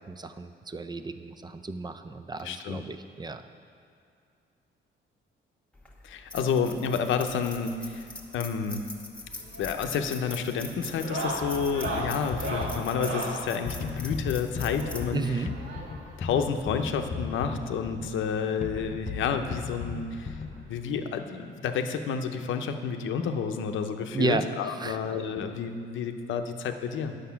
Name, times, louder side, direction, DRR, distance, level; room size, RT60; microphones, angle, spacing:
voice 1, 0.1-3.4 15.1-15.5 24.1-24.5 24.8-25.0, right 3 dB, 20° right, 9 dB, 0.5 m, -32 dB
voice 2, 2.4-2.8 6.0-8.1 8.3-8.9 9.6-15.2 16.2-20.4 20.7-27.1, left 6 dB, 75° left, 7 dB, 0.7 m, -30 dB
sound 1, 5.7-16.2, left 2 dB, 5° left, 1.2 m, -43 dB
sound 2, 9.4-9.7 10.0-10.3 10.9-13.4 14.7-16.1 17.2-17.3 17.5-17.6 18.0-18.1 19.4-19.5 20.9-21.0, right 1 dB, 70° right, 1.6 m, -35 dB
sound 3, 11.4-21.0, left 5 dB, 35° left, 0.5 m, -37 dB
9.4 x 6.7 x 5.7 m, 2.4 s
cardioid pair, 90°, 20 cm